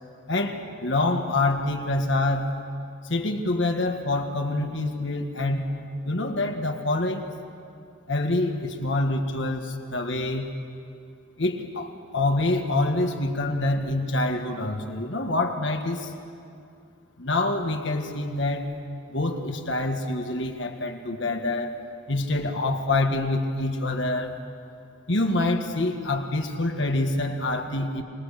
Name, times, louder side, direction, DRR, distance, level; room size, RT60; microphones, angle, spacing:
voice 1, 0.3-2.6 3.0-5.8 6.0-7.3 8.1-10.5 11.4-16.1 17.2-18.7 19.1-21.8 22.1-24.4 25.1-28.0, left 2 dB, 65° left, 4 dB, 1.8 m, -26 dB
26.5 x 20.0 x 6.7 m, 2.4 s
head